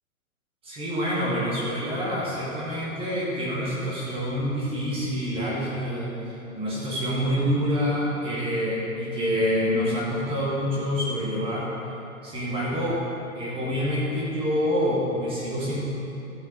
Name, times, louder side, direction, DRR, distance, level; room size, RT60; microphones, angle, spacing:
voice 1, 0.6-11.7 12.2-13.0 13.4-15.8, equal, 10° right, -6 dB, 1.6 m, -27 dB
12.5 x 7.0 x 5.4 m, 2.8 s
figure-of-eight pair, 125°, 43 cm